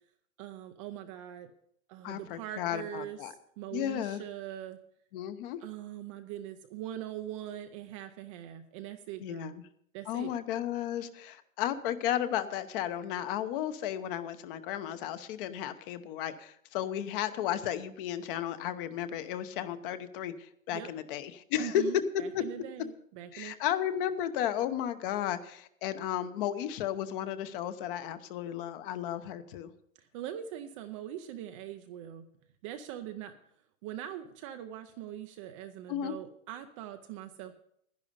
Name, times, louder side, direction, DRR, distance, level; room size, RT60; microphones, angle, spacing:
voice 1, 0.4-1.5 1.9-4.8 5.6-9.6 9.9-10.3 20.7-20.9 21.6-23.6 30.0-32.3 32.6-33.3 33.8-37.5, right 11 dB, 25° right, 7 dB, 0.4 m, -42 dB
voice 2, 2.0-3.3 3.7-4.2 5.1-5.6 9.2-9.6 10.1-21.8 22.3-22.4 23.3-29.7 35.9-36.1, left 11 dB, 40° left, 11 dB, 0.9 m, -34 dB
10.5 x 10.5 x 5.3 m, 0.68 s
hypercardioid pair, 140°, 41 cm